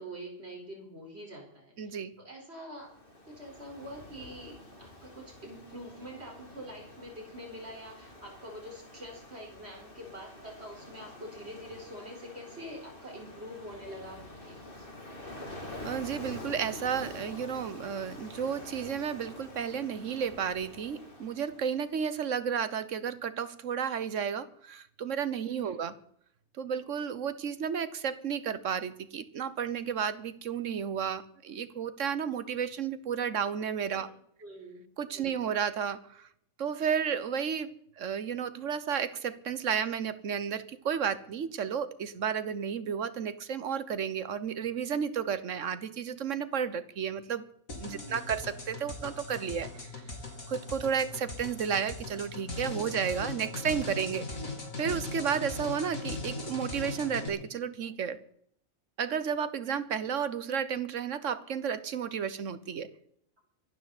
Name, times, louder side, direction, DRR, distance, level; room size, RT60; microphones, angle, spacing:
voice 1, 0.0-2.9 3.3-14.9 25.5-25.8 33.9-34.1 34.4-34.8 35.1-35.4 47.9-48.3, equal, 50° right, 1 dB, 4.7 m, -45 dB
voice 2, 1.8-2.1 15.8-26.0 26.6-34.1 35.0-36.3 36.6-47.5 47.7-49.7 50.5-54.3 54.8-58.2 59.0-62.9, right 7 dB, 70° right, 14 dB, 1.3 m, -32 dB
Ocean, 2.8-21.9, left 2 dB, 40° left, 2.8 m, -47 dB
sound 1, 47.7-57.3, left 2 dB, 80° left, 3.5 m, -39 dB
24.5 x 12.0 x 4.1 m, 0.68 s
omnidirectional pair, 1.4 m